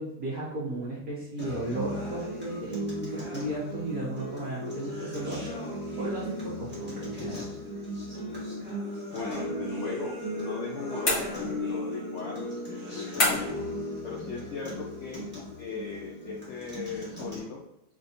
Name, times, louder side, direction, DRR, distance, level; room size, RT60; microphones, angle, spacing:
voice 1, 0.0-5.4 6.0-7.5, right 2 dB, 60° right, -6 dB, 1.1 m, -35 dB
Acoustic guitar, 1.4-17.4, left 1 dB, 5° right, 1.1 m, -36 dB
voice 2, 9.1-13.6 14.0-15.3 15.6-17.6, left 4 dB, 85° left, -1 dB, 0.6 m, -38 dB
sound 1, 11.0-11.8 13.2-13.7, left 2 dB, 40° left, 1.4 m, -28 dB
4.1 x 2.7 x 2.7 m, 0.89 s
omnidirectional pair, 1.9 m